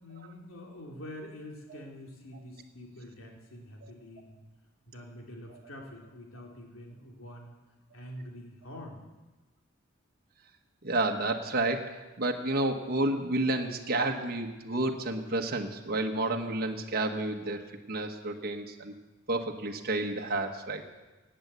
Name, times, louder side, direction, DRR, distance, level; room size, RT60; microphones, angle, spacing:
voice 1, 0.0-4.4 4.9-7.5 7.9-9.0, left 1 dB, 80° left, 0 dB, 2.9 m, -46 dB
voice 2, 10.8-17.6 17.9-18.9 19.3-20.9, right 2 dB, 50° right, 3 dB, 1.4 m, -30 dB
17.5 x 8.9 x 8.2 m, 1.2 s
head